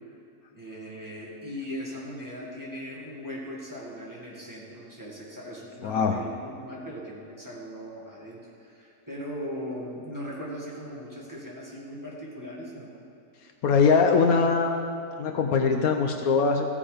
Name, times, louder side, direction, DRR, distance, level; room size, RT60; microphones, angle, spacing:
voice 1, 0.5-13.0, equal, 10° right, -5 dB, 2.0 m, -39 dB
voice 2, 5.8-6.2 13.6-14.7 15.2-16.7, left 5 dB, 70° left, 4 dB, 1.1 m, -22 dB
15.5 x 7.1 x 5.1 m, 2.6 s
omnidirectional pair, 1.7 m